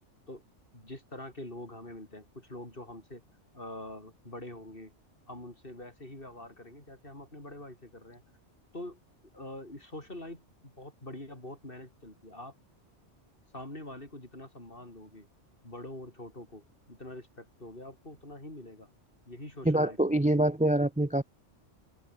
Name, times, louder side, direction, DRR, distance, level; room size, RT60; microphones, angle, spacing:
voice 1, 0.7-3.2 3.5-4.9 5.3-8.2 8.7-9.0 9.3-12.5 13.5-15.3 15.6-18.9 19.3-20.3, left 1 dB, 45° left, 6.1 m, -45 dB
voice 2, 19.6-21.2, right 1 dB, 10° right, 0.3 m, -25 dB
open air
omnidirectional pair, 1.2 m